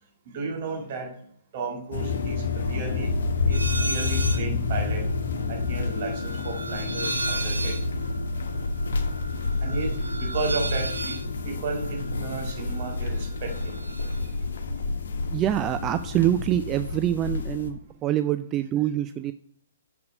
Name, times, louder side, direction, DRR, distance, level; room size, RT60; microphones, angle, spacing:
voice 1, 0.3-1.1 1.5-3.1 3.5-5.1 5.5-7.8 9.6-11.2 11.4-13.8, right 3 dB, 45° right, 3 dB, 1.9 m, -33 dB
sound 1, 1.9-17.7, left 3 dB, 60° left, 1.2 m, -29 dB
sound 2, 3.5-4.5 4.8-13.0 13.2-14.3, right 2 dB, 75° right, 1.0 m, -35 dB
voice 2, 15.3-19.3, right 12 dB, 20° right, 11 dB, 0.3 m, -25 dB
6.8 x 6.7 x 5.1 m, 0.65 s
figure-of-eight pair, 120°, 0 cm